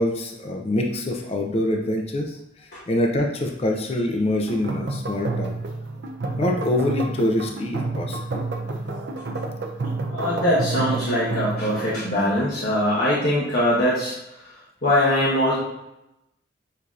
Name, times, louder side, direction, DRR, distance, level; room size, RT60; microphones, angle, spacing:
voice 1, 0.0-5.6 6.4-8.4, left 1 dB, 30° left, 2 dB, 0.4 m, -25 dB
sound 1, 4.5-12.1, right 3 dB, 65° right, 0.5 m, -29 dB
voice 2, 10.1-15.6, left 1 dB, 50° left, -7 dB, 0.9 m, -22 dB
6.5 x 2.7 x 2.4 m, 0.88 s
head